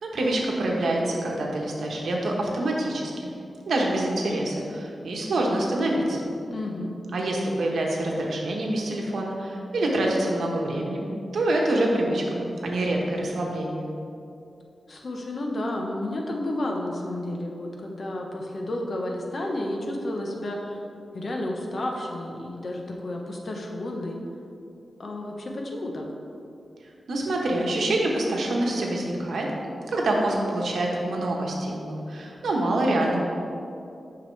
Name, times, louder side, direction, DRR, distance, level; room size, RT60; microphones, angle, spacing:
voice 1, 0.0-3.1 3.7-6.3 7.1-11.1 11.3-13.9 27.1-29.5 29.9-33.2, right 1 dB, 80° right, -1 dB, 1.2 m, -26 dB
voice 2, 6.5-6.9 14.9-20.8 21.1-24.2 25.0-26.1, left 1 dB, 45° left, 0 dB, 0.9 m, -31 dB
9.5 x 5.9 x 3.3 m, 2.6 s
wide cardioid pair, 165°, 0 cm